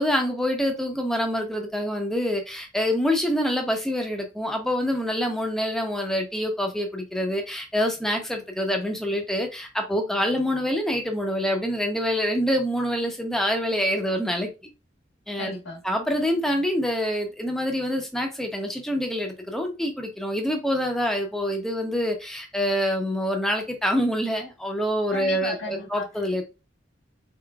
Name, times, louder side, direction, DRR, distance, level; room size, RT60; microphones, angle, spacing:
voice 1, 0.0-14.5 15.3-15.5 15.8-26.4, equal, ahead, 0.8 m, -26 dB
voice 2, 15.4-15.8 25.1-26.1, left 2 dB, 85° left, 1.6 m, -34 dB
3.8 x 3.7 x 2.3 m
head